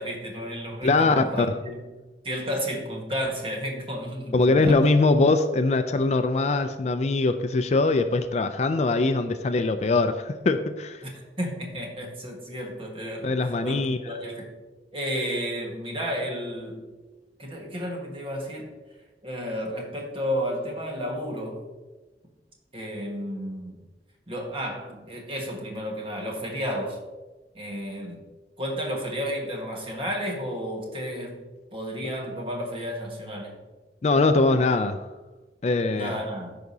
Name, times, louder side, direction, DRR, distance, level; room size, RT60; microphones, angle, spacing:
voice 1, 0.0-1.9 2.2-4.9 11.0-14.5 14.9-16.9 17.4-18.7 19.2-21.6 22.7-23.8 24.3-27.0 27.5-28.2 28.6-31.4 31.7-33.6 35.9-36.6, equal, 30° right, 0 dB, 1.5 m, -32 dB
voice 2, 0.8-1.5 4.3-11.0 13.2-14.0 34.0-35.0 35.6-36.2, left 3 dB, 40° left, 9 dB, 0.4 m, -22 dB
14.0 x 5.0 x 2.7 m, 1.2 s
head